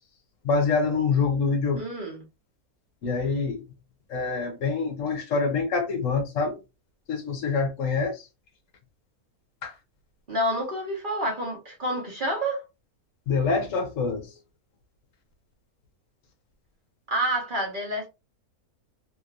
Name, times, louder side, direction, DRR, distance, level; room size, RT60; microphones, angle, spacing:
voice 1, 0.4-1.8 3.0-3.6 4.1-6.6 7.1-8.3 9.6-9.7 13.3-14.3, left 4 dB, 65° left, 1.0 m, -25 dB
voice 2, 1.8-2.3 10.3-12.6 17.1-18.1, right 1 dB, 40° right, 0.9 m, -28 dB
2.9 x 2.9 x 2.4 m
omnidirectional pair, 1.5 m